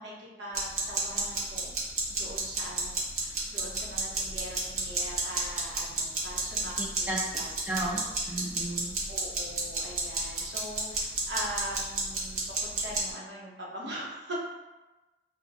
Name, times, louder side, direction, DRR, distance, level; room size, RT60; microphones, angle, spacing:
voice 1, 0.0-1.7 2.1-7.5 8.0-8.2 8.7-8.8 9.1-14.3, equal, 80° right, -5 dB, 1.1 m, -41 dB
sound 1, 0.5-13.0, right 3 dB, 45° right, 0.9 m, -31 dB
voice 2, 7.4-8.9, right 1 dB, 10° right, -5 dB, 0.5 m, -34 dB
5.8 x 2.4 x 2.6 m, 1.1 s
head